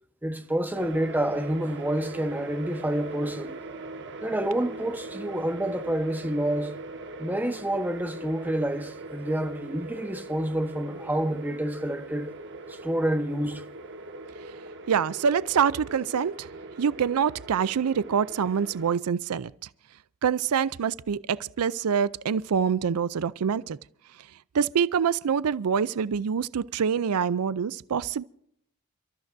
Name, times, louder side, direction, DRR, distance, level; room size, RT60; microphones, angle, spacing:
voice 1, 0.2-3.6 4.2-6.7 7.2-12.3 12.7-13.6, right 1 dB, 10° right, 1.1 m, -28 dB
sound 1, 0.7-19.0, right 2 dB, 55° right, 1.3 m, -41 dB
voice 2, 14.9-16.5 16.8-19.5 20.2-23.8 24.5-28.2, right 7 dB, 85° right, 0.4 m, -25 dB
29.5 x 13.5 x 2.6 m
head